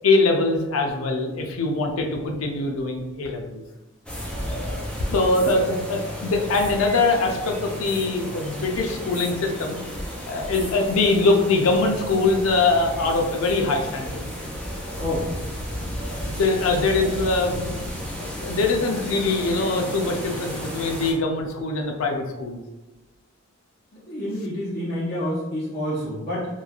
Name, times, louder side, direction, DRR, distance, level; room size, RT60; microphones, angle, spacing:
voice 1, 0.0-3.6 4.5-9.8 10.3-14.3 16.1-17.9 18.2-22.6, left 3 dB, 90° left, 2 dB, 0.5 m, -23 dB
sound 1, 4.1-21.1, equal, 5° left, 0.4 m, -33 dB
voice 2, 15.0-15.3 23.9-26.5, equal, 45° left, -10 dB, 0.7 m, -28 dB
3.1 x 2.2 x 2.4 m, 1.1 s
head